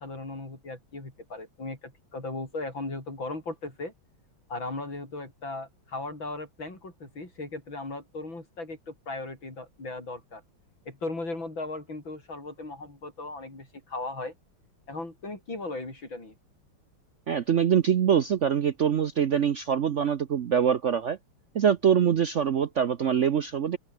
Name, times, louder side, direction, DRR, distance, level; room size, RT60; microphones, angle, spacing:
voice 1, 0.0-3.9 4.5-10.4 10.9-14.3 14.9-16.3, left 2 dB, 60° left, 7.4 m, -37 dB
voice 2, 17.3-21.2 21.5-23.8, right 8 dB, 80° right, 0.6 m, -24 dB
open air
omnidirectional pair, 2.3 m